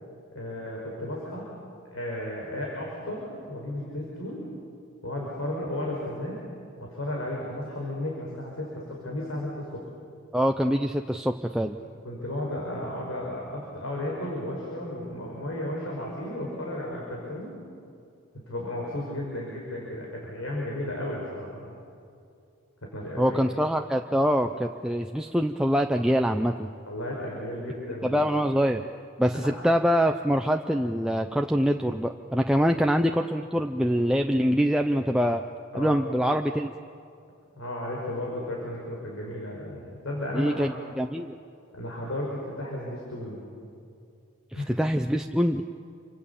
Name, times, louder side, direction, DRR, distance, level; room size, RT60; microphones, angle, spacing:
voice 1, 0.3-1.5 1.9-4.4 5.0-6.4 6.8-9.8 11.6-11.8 12.0-17.6 18.5-21.7 22.9-23.4 26.9-28.3 29.4-29.5 32.6-32.7 35.7-36.0 37.6-40.7 41.7-43.4 44.5-44.7, left 1 dB, 75° left, -3 dB, 5.5 m, -34 dB
voice 2, 10.3-11.8 23.2-26.7 28.0-28.8 29.2-35.4 35.7-36.7 40.3-41.4 44.5-45.6, equal, 5° right, 3 dB, 0.6 m, -24 dB
29.0 x 25.5 x 7.2 m, 2.5 s
head